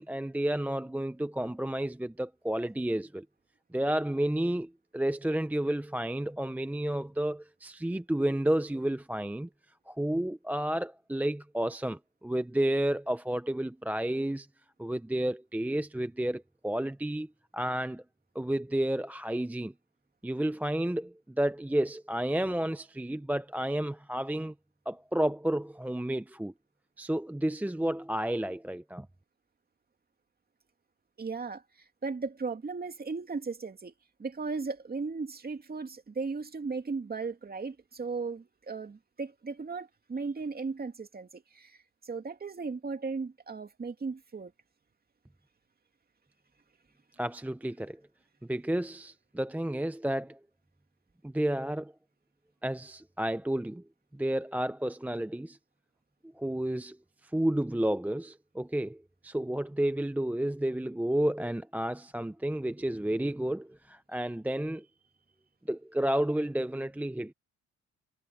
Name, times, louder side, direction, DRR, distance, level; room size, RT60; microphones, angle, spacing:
voice 1, 0.0-3.3 3.7-9.5 9.9-14.5 14.8-18.0 18.3-19.7 20.2-24.5 24.9-26.5 27.0-29.1 47.2-48.0 48.5-50.4 51.2-51.9 52.6-53.8 54.1-55.6 56.4-57.0 57.2-64.9 65.7-67.3, right 1 dB, 5° right, 0.7 m, -31 dB
voice 2, 31.2-31.6 32.0-33.9 34.2-41.8 42.0-44.5, right 4 dB, 30° right, 2.7 m, -36 dB
cardioid pair, 90°, 30 cm